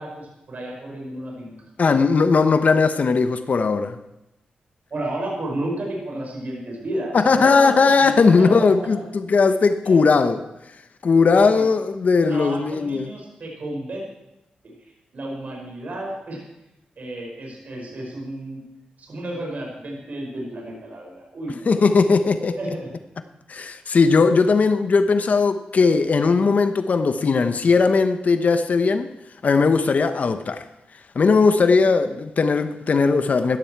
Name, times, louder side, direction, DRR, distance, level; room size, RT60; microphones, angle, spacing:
voice 1, 0.0-1.5 4.9-9.0 9.8-10.0 11.3-11.5 12.3-14.0 14.6-14.7 15.1-16.4 17.0-18.6 19.0-21.9 22.6-22.9, right 1 dB, 60° right, 5.9 m, -32 dB
voice 2, 1.8-4.0 7.1-10.4 11.0-13.1 21.7-22.6 23.5-29.1 29.4-30.6 31.1-33.6, left 4 dB, 55° left, 1.0 m, -18 dB
15.5 x 13.5 x 4.7 m
cardioid pair, 70°, 3 cm